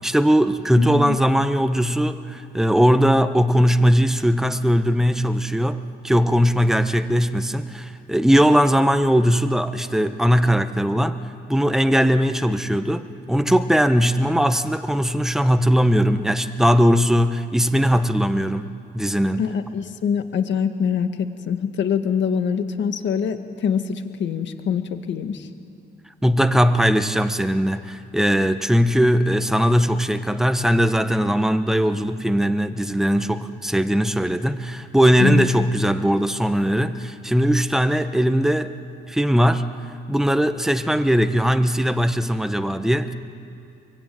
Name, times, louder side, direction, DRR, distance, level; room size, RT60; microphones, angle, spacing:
voice 1, 0.0-11.2 11.5-18.7 18.9-19.5 26.2-38.7 39.1-39.7 40.1-43.1, equal, ahead, 9 dB, 1.4 m, -19 dB
voice 2, 0.8-1.2 19.4-24.8 25.1-25.5 35.2-35.5, left 7 dB, 65° left, 7 dB, 1.9 m, -24 dB
25.0 x 23.5 x 9.5 m, 2.5 s
cardioid pair, 90°, 20 cm